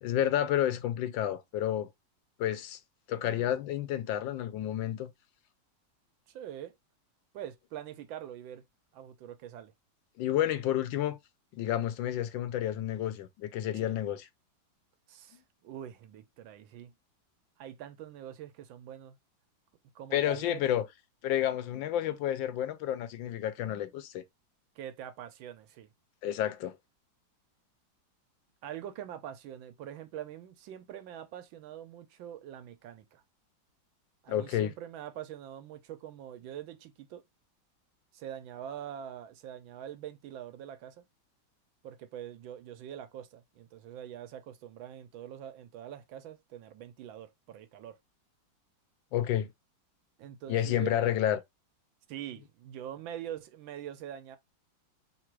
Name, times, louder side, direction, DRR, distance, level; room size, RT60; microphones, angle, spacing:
voice 1, 0.0-1.9 2.4-2.8 3.1-5.1 10.2-11.2 11.5-14.3 20.1-20.9 21.2-24.2 26.2-26.8 34.3-34.7 49.1-49.5 50.5-51.4, left 11 dB, 80° left, 1.4 m, -30 dB
voice 2, 6.3-6.7 7.3-8.6 8.9-9.7 13.7-13.9 15.1-16.9 17.6-19.2 19.9-20.6 24.7-25.9 28.6-33.2 34.2-37.2 38.1-41.0 41.8-48.0 50.2-51.1 52.1-54.4, right 10 dB, 90° right, 1.5 m, -44 dB
3.6 x 2.5 x 4.5 m
omnidirectional pair, 2.1 m